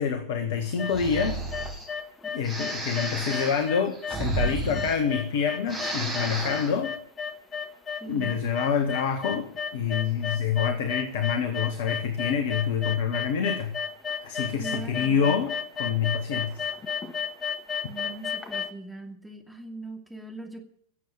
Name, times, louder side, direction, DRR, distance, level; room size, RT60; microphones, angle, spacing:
voice 1, 0.0-1.4 2.3-7.0 8.1-13.8 14.2-15.5 15.8-16.7, left 7 dB, 55° left, 8 dB, 1.4 m, -27 dB
sound 1, 0.6-18.7, left 7 dB, 20° left, 1.5 m, -33 dB
Breathing, 0.9-1.9 2.4-5.4 5.6-6.8, right 2 dB, 20° right, 5.0 m, -32 dB
voice 2, 8.0-8.4 14.6-15.4 17.9-20.6, right 2 dB, 5° right, 2 dB, 2.7 m, -41 dB
16.0 x 7.6 x 9.2 m, 0.66 s
figure-of-eight pair, 90°, 0 cm